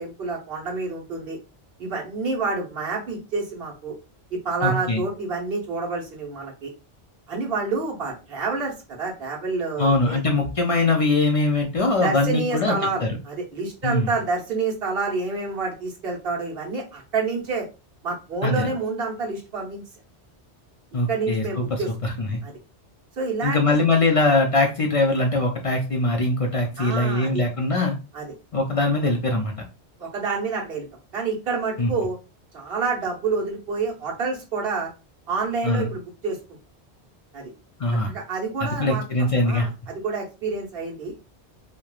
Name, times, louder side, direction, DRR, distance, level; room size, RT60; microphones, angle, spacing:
voice 1, 0.0-1.4 1.8-3.9 4.4-6.7 7.3-10.2 12.0-17.7 18.0-19.8 21.1-21.9 22.4-22.5 23.2-23.6 26.8-27.4 28.1-28.3 30.0-30.8 31.1-32.2 32.5-34.9 35.3-36.4 37.3-37.5 38.1-39.0 39.4-41.1, right 4 dB, 60° right, -2 dB, 1.2 m, -28 dB
voice 2, 4.6-5.0 9.8-13.1 13.8-14.1 18.4-18.7 20.9-22.4 23.4-28.0 28.5-29.5 31.8-31.9 35.6-35.9 37.8-38.1 38.6-39.7, left 2 dB, 60° left, 2 dB, 0.3 m, -22 dB
3.1 x 2.1 x 2.3 m, 0.30 s
omnidirectional pair, 1.2 m